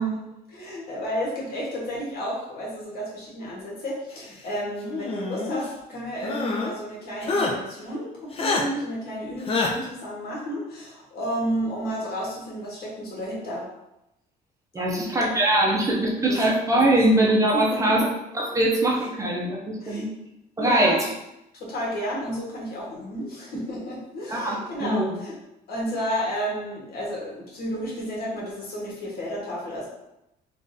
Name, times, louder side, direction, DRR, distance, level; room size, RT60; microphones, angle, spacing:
voice 1, 0.0-13.7 14.8-15.3 15.5-15.8 16.3-16.4 16.8-16.9 17.5-17.8 19.0-19.1 19.8-20.1 20.6-21.0 21.5-25.3 25.7-29.9, equal, 70° left, -5 dB, 1.4 m, -32 dB
sound 1, 4.8-5.7 6.2-6.7 7.2-7.5 8.3-8.6 9.5-9.7, left 3 dB, 35° left, 0.6 m, -26 dB
voice 2, 14.7-18.1 18.3-20.1 20.6-21.1 24.3-25.2, right 1 dB, 20° right, -3 dB, 0.6 m, -22 dB
3.5 x 2.5 x 2.6 m, 0.88 s
cardioid pair, 110°, 17 cm